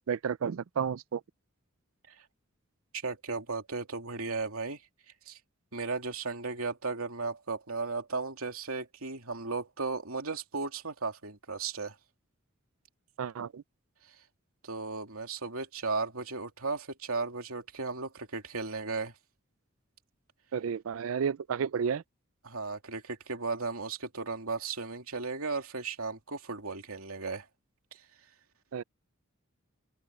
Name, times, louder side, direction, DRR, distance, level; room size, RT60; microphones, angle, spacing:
voice 1, 0.1-1.2 13.2-13.6 20.5-22.0 28.7-28.8, right 7 dB, 70° right, 0.4 m, -31 dB
voice 2, 3.0-4.8 5.3-5.4 5.7-12.0 14.6-19.1 22.4-27.5, right 4 dB, 90° right, 2.8 m, -35 dB
open air
head